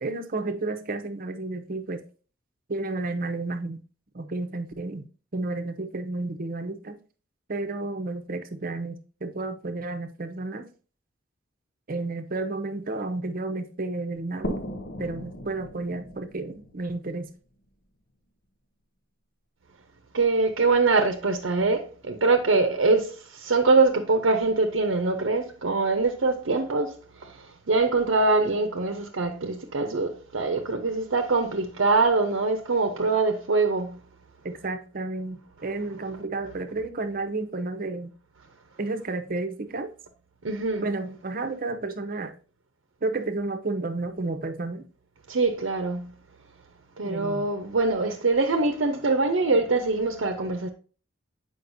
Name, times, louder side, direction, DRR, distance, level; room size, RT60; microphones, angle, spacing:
voice 1, 0.0-2.0 2.7-3.8 4.1-5.1 5.3-7.0 7.5-10.7 11.9-14.6 15.0-17.3 34.4-38.1 38.8-39.9 40.8-42.3 43.0-44.8 47.0-47.5, right 2 dB, 45° right, 0.8 m, -31 dB
sound 1, 14.4-18.0, equal, 55° left, 0.8 m, -38 dB
voice 2, 20.1-26.9 27.7-34.0 40.4-40.8 45.3-46.1 47.0-50.7, right 3 dB, 80° right, 0.7 m, -23 dB
8.0 x 5.2 x 2.6 m
head